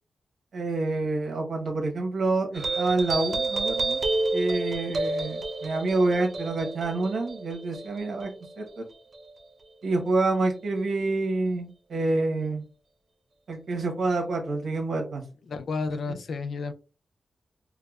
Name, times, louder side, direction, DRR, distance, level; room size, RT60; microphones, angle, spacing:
voice 1, 0.5-4.0 4.3-8.3 8.6-8.8 9.8-12.6 13.5-15.2 16.1-16.2, right 3 dB, 75° right, 2 dB, 1.0 m, -27 dB
sound 1, 2.5-9.4, right 2 dB, 45° right, 0.7 m, -30 dB
voice 2, 15.5-16.7, left 4 dB, 70° left, 8 dB, 0.4 m, -31 dB
4.6 x 2.1 x 2.3 m, 0.34 s
wide cardioid pair, 115°, 0 cm